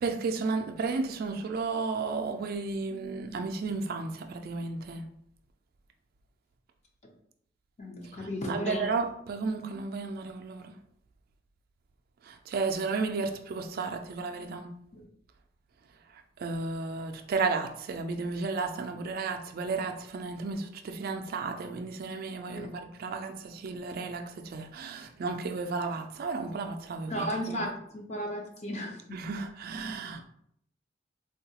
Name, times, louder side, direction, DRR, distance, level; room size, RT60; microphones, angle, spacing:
voice 1, 0.0-5.1 8.0-10.7 12.2-14.7 16.1-27.6 29.1-30.2, right 4 dB, 50° right, 0.3 m, -33 dB
voice 2, 7.8-8.8 14.9-15.0 22.5-22.7 27.1-29.2, equal, 35° left, 0.6 m, -34 dB
3.7 x 2.3 x 2.8 m
head